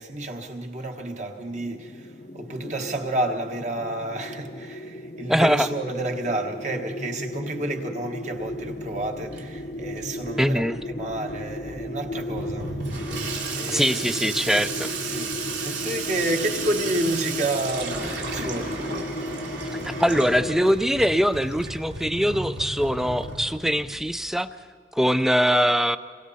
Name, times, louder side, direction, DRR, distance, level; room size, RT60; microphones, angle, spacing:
voice 1, 0.0-13.1 13.5-14.0 15.0-18.9, right 1 dB, 40° right, 1.4 m, -30 dB
sound 1, 1.5-20.8, left 1 dB, 45° left, 0.8 m, -35 dB
voice 2, 5.3-5.7 10.4-10.8 13.7-14.9 19.7-24.5 24.9-26.0, equal, ahead, 0.4 m, -22 dB
Water tap faucet / Sink (filling or washing), 8.3-24.4, right 4 dB, 85° right, 3.1 m, -34 dB
27.0 x 23.0 x 4.2 m
head